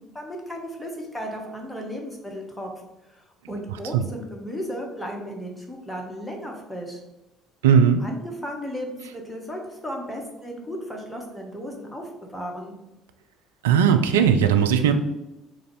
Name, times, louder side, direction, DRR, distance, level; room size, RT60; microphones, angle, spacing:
voice 1, 0.0-2.7 3.1-3.2 3.5-7.0 8.0-12.7, equal, 5° left, 0 dB, 0.9 m, -35 dB
voice 2, 7.6-8.0 13.6-14.9, right 7 dB, 75° right, 7 dB, 0.3 m, -18 dB
3.9 x 2.5 x 4.5 m, 0.94 s
figure-of-eight pair, 55°, 0 cm